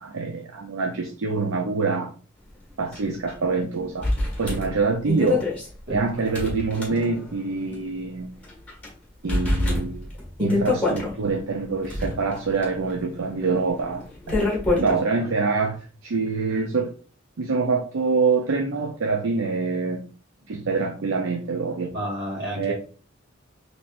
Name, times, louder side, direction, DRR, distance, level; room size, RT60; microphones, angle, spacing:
voice 1, 0.0-2.1 2.8-4.1 4.4-5.5 5.9-8.4 9.2-10.1 10.4-14.5 14.8-16.9 17.4-20.0 20.5-21.9 22.6-22.7, right 4 dB, 75° right, 2 dB, 0.5 m, -25 dB
sound 1, 2.9-3.0 3.3-3.4 4.0-7.4 7.7-7.8 8.4-8.9 9.3-11.1 11.7-15.0, left 2 dB, 10° left, 1.5 m, -26 dB
voice 2, 5.9-6.3 14.9-15.3 21.9-22.7, equal, 50° right, -2 dB, 1.8 m, -32 dB
4.1 x 3.3 x 2.5 m, 0.39 s
head